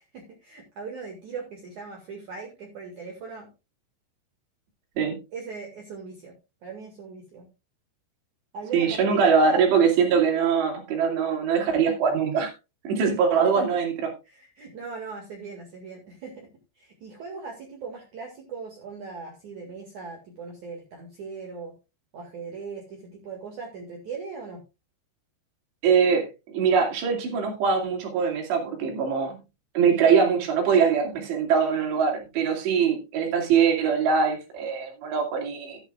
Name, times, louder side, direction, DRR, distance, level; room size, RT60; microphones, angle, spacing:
voice 1, 0.0-3.5 5.3-6.3 6.6-7.5 8.5-9.7 13.5-13.8 14.2-16.5 16.8-21.7 22.1-24.6, right 5 dB, 50° right, 1 dB, 3.0 m, -39 dB
voice 2, 8.7-12.5 12.8-14.1 25.8-29.4 29.7-35.8, right 6 dB, 75° right, 2 dB, 4.7 m, -22 dB
14.5 x 11.0 x 2.4 m, 0.28 s
omnidirectional pair, 5.0 m